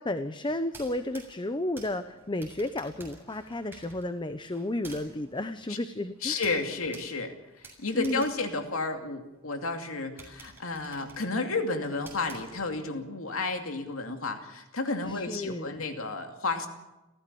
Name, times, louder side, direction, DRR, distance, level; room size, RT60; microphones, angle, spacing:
voice 1, 0.0-6.4 7.9-8.2 15.0-15.7, left 1 dB, 20° left, 10 dB, 0.9 m, -32 dB
sound 1, 0.6-9.4 9.8-9.9 10.2-13.0, right 3 dB, 10° right, 7.2 m, -52 dB
voice 2, 6.2-16.7, left 3 dB, 85° left, 5 dB, 2.6 m, -32 dB
29.5 x 15.5 x 7.0 m, 1.0 s
head